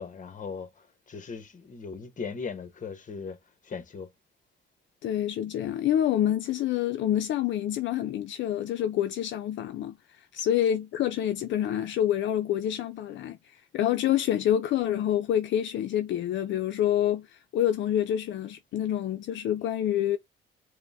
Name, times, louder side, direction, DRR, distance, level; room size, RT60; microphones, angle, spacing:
voice 1, 0.0-3.4 3.6-4.1, left 5 dB, 40° left, 1.0 m, -38 dB
voice 2, 5.0-20.2, left 11 dB, 70° left, 0.5 m, -27 dB
4.9 x 2.1 x 3.4 m
cardioid pair, 90°, 20 cm